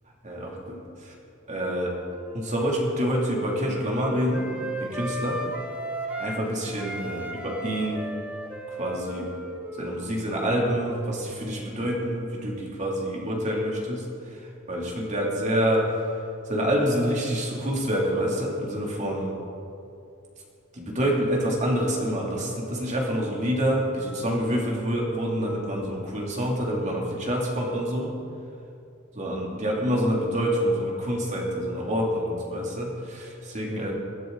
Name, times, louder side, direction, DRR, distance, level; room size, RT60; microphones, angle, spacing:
voice 1, 0.2-1.1 1.5-2.0 2.3-4.5 4.8-5.4 6.2-8.1 8.7-9.3 9.8-19.3 20.7-28.1 29.1-33.9, equal, 35° right, -2 dB, 2.9 m, -27 dB
Wind instrument woodwind instrument, 1.9-6.4 6.7-11.2, right 1 dB, 5° right, 1.4 m, -36 dB
21.5 x 13.0 x 4.0 m, 2.6 s
head